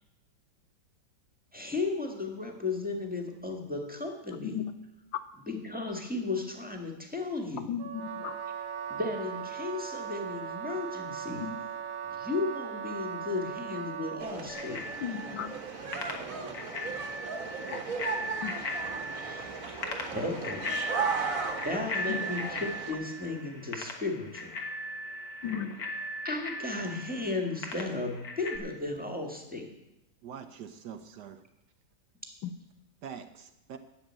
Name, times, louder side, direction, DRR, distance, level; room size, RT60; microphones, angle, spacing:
voice 1, 1.5-4.6 5.5-7.7 8.9-11.4 12.1-14.8 19.0-20.6 21.6-24.5 26.2-29.7, left 3 dB, 5° right, 1.5 m, -35 dB
voice 2, 7.7-8.4 11.4-11.6 15.0-15.6 17.7-17.8 18.4-18.5 22.1-22.2 25.4-25.8 32.4-32.5, left 8 dB, 85° left, 1.6 m, -35 dB
Wind instrument woodwind instrument, 7.8-14.3, right 8 dB, 85° right, 1.5 m, -38 dB
sound 1, 14.2-22.9, right 5 dB, 50° right, 1.5 m, -36 dB
Bicycle bell, 14.5-28.6, left 1 dB, 55° left, 1.8 m, -38 dB
voice 3, 30.2-31.4 33.0-33.8, right 7 dB, 65° right, 1.2 m, -44 dB
11.5 x 7.3 x 8.8 m
omnidirectional pair, 2.1 m